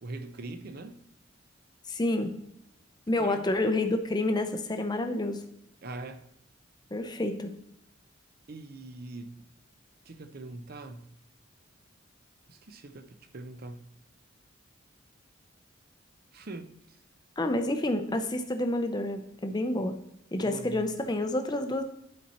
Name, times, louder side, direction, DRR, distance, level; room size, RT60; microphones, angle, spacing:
voice 1, 0.0-1.0 3.2-3.5 5.8-6.2 8.5-9.5 10.1-11.1 12.5-13.8 16.3-17.0 20.4-20.8, right 2 dB, 45° right, 0.6 m, -42 dB
voice 2, 1.9-2.3 3.1-5.4 6.9-7.5 17.4-20.0 20.3-21.8, left 1 dB, 20° left, 0.6 m, -29 dB
11.0 x 4.3 x 4.2 m
head